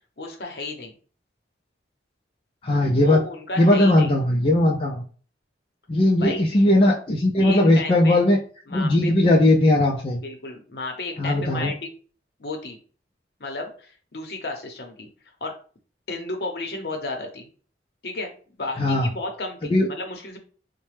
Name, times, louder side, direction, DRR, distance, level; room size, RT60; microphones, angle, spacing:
voice 1, 0.2-0.9 3.0-4.1 6.2-6.4 7.4-8.2 8.7-9.2 10.2-11.9 12.4-12.8 13.4-15.1 15.4-15.5 16.1-17.5 18.0-18.3 18.6-20.4, left 2 dB, 60° left, 3 dB, 0.7 m, -33 dB
voice 2, 2.6-3.2 3.6-5.0 5.9-8.4 8.7-10.2 11.2-11.7 18.8-19.1 19.7-19.9, left 1 dB, 30° left, -2 dB, 0.4 m, -18 dB
4.0 x 2.2 x 3.2 m, 0.41 s
head